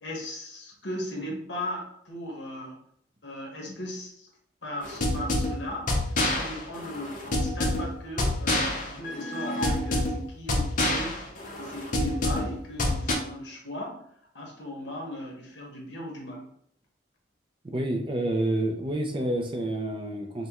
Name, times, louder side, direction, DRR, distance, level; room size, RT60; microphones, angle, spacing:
voice 1, 0.0-2.8 3.2-4.3 4.6-5.9 6.3-11.2 11.6-14.0 14.3-16.4, left 1 dB, 65° left, -1 dB, 1.1 m, -37 dB
sound 1, 4.8-13.1, left 1 dB, 45° left, 0.7 m, -28 dB
voice 2, 17.7-20.5, right 1 dB, 25° right, 2 dB, 0.5 m, -28 dB
5.4 x 2.2 x 2.9 m, 0.70 s
head